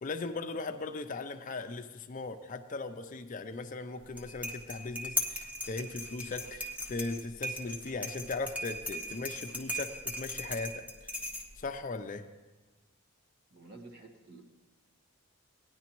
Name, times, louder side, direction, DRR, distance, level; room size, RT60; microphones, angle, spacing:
voice 1, 0.0-11.1 11.6-12.3, left 3 dB, 35° left, 8 dB, 0.4 m, -38 dB
sound 1, 4.0-11.7, left 1 dB, 5° right, 0.9 m, -38 dB
voice 2, 13.5-14.4, right 2 dB, 45° right, 2 dB, 1.3 m, -51 dB
18.0 x 10.0 x 3.0 m, 1.2 s
head